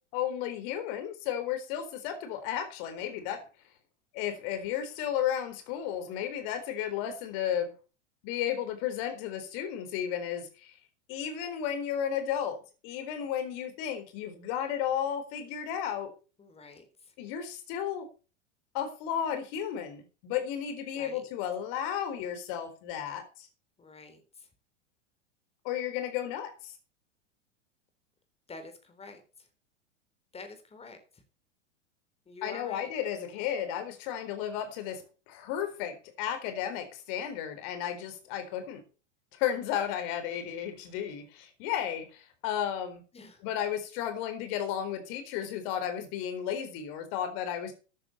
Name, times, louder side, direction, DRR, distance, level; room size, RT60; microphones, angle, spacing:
voice 1, 0.1-3.5 4.1-7.7 8.2-10.8 11.1-12.6 12.8-16.1 17.2-18.1 18.7-23.5 25.6-26.7 32.4-38.8 39.3-43.0 43.4-47.7, left 9 dB, 45° left, 8 dB, 4.1 m, -33 dB
voice 2, 16.4-17.1 20.9-21.3 23.8-24.5 28.5-29.2 30.3-31.2 32.3-32.9 43.1-43.4, left 3 dB, 15° left, 7 dB, 3.9 m, -48 dB
13.5 x 10.0 x 4.3 m, 0.34 s
figure-of-eight pair, 90°, 37 cm